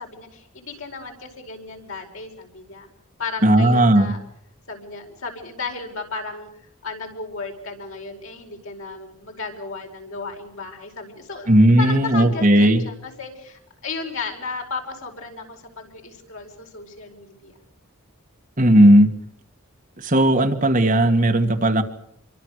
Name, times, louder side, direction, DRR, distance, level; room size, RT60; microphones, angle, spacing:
voice 1, 0.0-2.9 3.2-4.2 4.7-6.5 6.8-11.5 11.8-17.5, left 4 dB, 70° left, 2 dB, 5.0 m, -34 dB
voice 2, 3.4-4.1 11.5-12.8 18.6-19.1 20.0-21.8, right 1 dB, 40° right, 5 dB, 2.0 m, -15 dB
26.5 x 23.5 x 6.5 m, 0.69 s
head